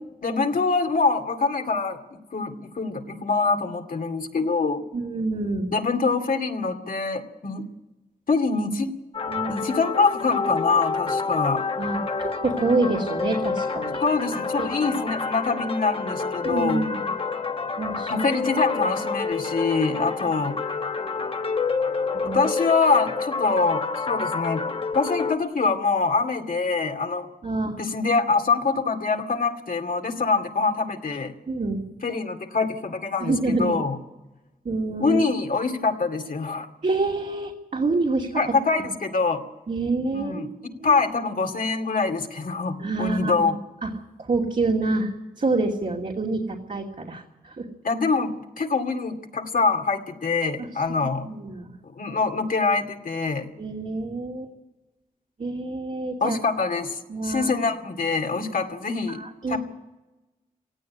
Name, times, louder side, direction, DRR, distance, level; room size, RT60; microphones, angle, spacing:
voice 1, 0.2-4.8 5.7-7.7 8.3-8.9 9.5-11.6 14.0-16.8 18.1-20.6 22.2-24.6 24.9-27.3 27.8-31.3 32.0-34.0 35.0-36.7 38.4-39.4 40.1-40.5 40.8-43.6 47.8-51.3 52.0-53.5 56.2-59.2 59.5-59.6, left 4 dB, 70° left, 4 dB, 2.4 m, -24 dB
voice 2, 4.9-5.7 9.3-9.6 11.8-14.0 14.6-14.9 16.4-17.1 17.8-18.1 22.1-22.4 27.4-27.8 31.5-31.8 33.2-33.8 34.6-35.2 36.8-38.4 39.7-40.5 40.8-40.9 42.8-43.5 43.8-43.9 44.2-47.7 50.6-51.7 53.6-54.5 55.4-56.4 57.1-57.5 59.1-59.6, right 3 dB, 60° right, -1 dB, 2.7 m, -27 dB
sound 1, 9.1-25.4, left 4 dB, 40° left, 1.2 m, -28 dB
18.0 x 15.5 x 9.7 m, 1.1 s
cardioid pair, 65°, 15 cm